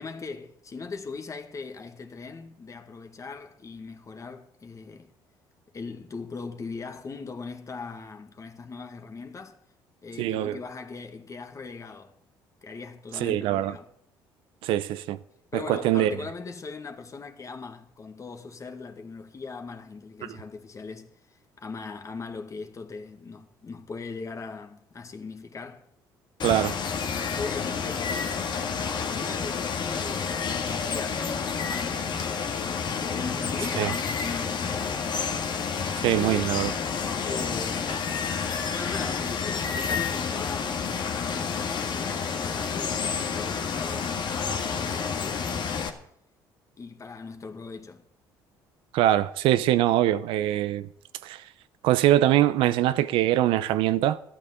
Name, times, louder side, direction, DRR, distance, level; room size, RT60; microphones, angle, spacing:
voice 1, 0.0-5.1 5.7-9.6 10.0-12.1 12.6-13.9 15.5-21.1 21.6-25.9 27.4-28.1 28.8-32.9 33.1-35.4 36.1-36.6 37.2-38.0 38.3-45.9 46.8-48.0, left 4 dB, 35° left, 1.9 m, -39 dB
voice 2, 10.2-10.6 13.2-13.7 14.6-15.2 15.5-16.1 26.4-26.8 33.8-33.9 36.0-36.7 48.9-50.9 51.2-51.4 51.8-54.2, right 13 dB, 75° right, 0.7 m, -23 dB
Water, 26.4-45.9, left 6 dB, 55° left, 1.9 m, -29 dB
13.0 x 8.8 x 8.2 m
supercardioid pair, 65°, 9 cm